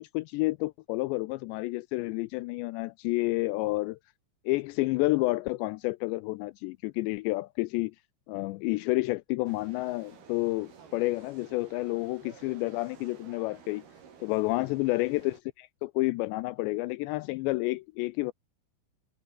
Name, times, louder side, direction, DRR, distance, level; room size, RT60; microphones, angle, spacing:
voice 1, 0.0-4.0 4.5-7.9 8.3-13.8 14.2-18.3, left 21 dB, 85° left, 2.5 m, -30 dB
sound 1, 9.5-15.4, right 7 dB, 55° right, 5.7 m, -53 dB
omnidirectional pair, 5.5 m